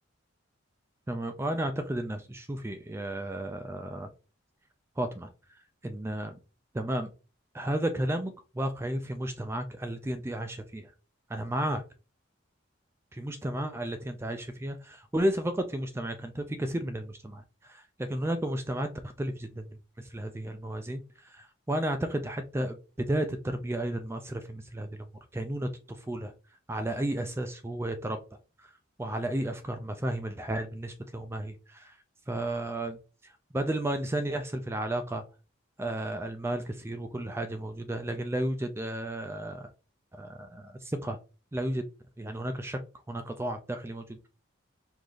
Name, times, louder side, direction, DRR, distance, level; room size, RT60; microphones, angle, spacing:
voice 1, 1.1-4.1 5.0-5.3 5.8-6.4 6.7-7.1 7.5-10.9 11.3-11.8 13.1-18.9 19.2-19.6 20.0-24.9 25.3-26.3 26.7-28.2 28.6-28.7 29.0-32.0 32.3-35.2 35.8-39.7 40.1-41.2 41.5-41.8 42.2-42.8 43.1-44.3, right 1 dB, 10° right, 7 dB, 0.3 m, -33 dB
4.9 x 2.6 x 3.8 m, 0.33 s
head